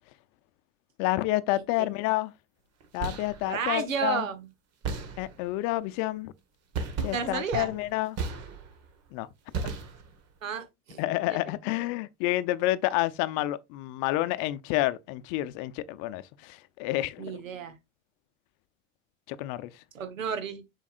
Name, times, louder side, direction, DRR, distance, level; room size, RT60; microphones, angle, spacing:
voice 1, 1.0-2.3 2.9-4.3 5.2-6.3 7.0-8.2 9.1-9.3 9.6-9.7 11.0-17.4 19.3-19.7, left 17 dB, 50° left, 0.7 m, -29 dB
voice 2, 1.5-1.9 3.5-4.5 7.1-7.8 10.4-11.0 11.3-11.4 17.2-17.7 19.9-20.6, right 6 dB, 90° right, 1.4 m, -32 dB
sound 1, 2.8-3.5 4.8-5.6 6.7-8.9 9.5-10.3, right 4 dB, 40° right, 1.6 m, -35 dB
7.1 x 5.3 x 2.5 m
hypercardioid pair, 90°, 38 cm